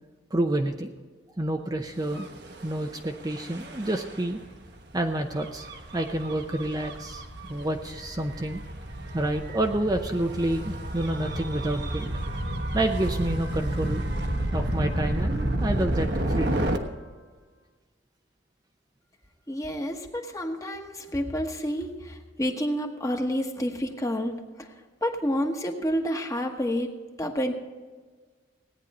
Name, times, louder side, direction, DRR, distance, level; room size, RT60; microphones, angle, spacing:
voice 1, 0.3-0.9 1.4-2.3 2.6-4.4 4.9-5.7 5.9-7.2 7.5-8.6 9.1-12.1 12.7-14.0 14.5-16.6, right 1 dB, 20° right, 4 dB, 0.6 m, -28 dB
Gull seagull / Waves surf / Siren, 2.0-16.8, right 1 dB, 60° right, 1.2 m, -31 dB
voice 2, 19.5-24.7 25.0-27.5, equal, 15° left, 3 dB, 1.2 m, -29 dB
17.5 x 9.7 x 4.2 m, 1.4 s
head